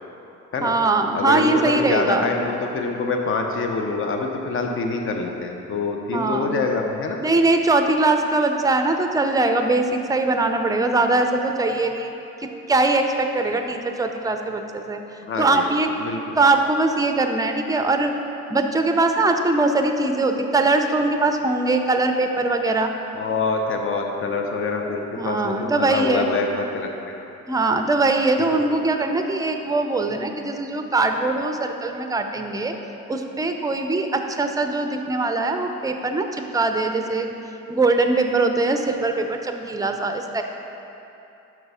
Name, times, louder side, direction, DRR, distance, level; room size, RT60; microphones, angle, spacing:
voice 1, 0.6-2.3 6.1-6.6 7.2-12.1 12.4-15.0 15.4-15.9 16.4-18.1 18.5-22.9 25.2-26.3 27.5-32.7 33.1-36.3 36.5-37.4 37.7-40.4, right 2 dB, 10° right, 5 dB, 0.5 m, -21 dB
voice 2, 1.1-7.2 15.2-15.7 16.0-16.4 23.1-27.3, left 3 dB, 45° left, 3 dB, 0.7 m, -25 dB
6.0 x 4.6 x 5.5 m, 2.9 s
cardioid pair, 90°, 30 cm